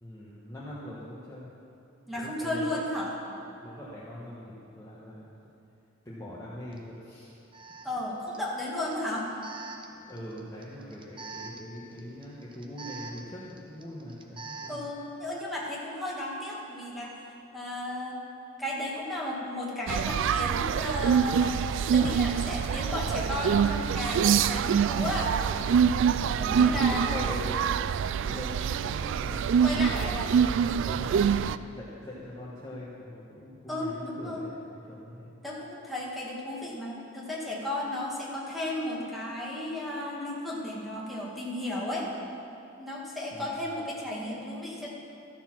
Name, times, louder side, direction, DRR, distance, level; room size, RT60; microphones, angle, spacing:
voice 1, 0.0-1.5 2.1-2.9 3.6-5.3 6.0-7.3 10.1-14.9 26.1-27.5 28.2-31.4 31.7-35.3 43.3-43.5, left 1 dB, 15° left, -8 dB, 1.4 m, -42 dB
voice 2, 2.1-3.1 7.8-9.3 14.7-18.2 18.6-25.3 26.4-27.3 29.6-30.3 31.1-31.3 33.7-34.4 35.4-42.1 42.8-44.9, left 1 dB, ahead, -5 dB, 2.0 m, -34 dB
Alarm, 6.7-6.8 7.5-14.9, right 3 dB, 25° right, 0.8 m, -46 dB
sound 1, 19.9-31.6, right 7 dB, 65° right, 0.3 m, -25 dB
14.0 x 6.9 x 6.0 m, 2.7 s
head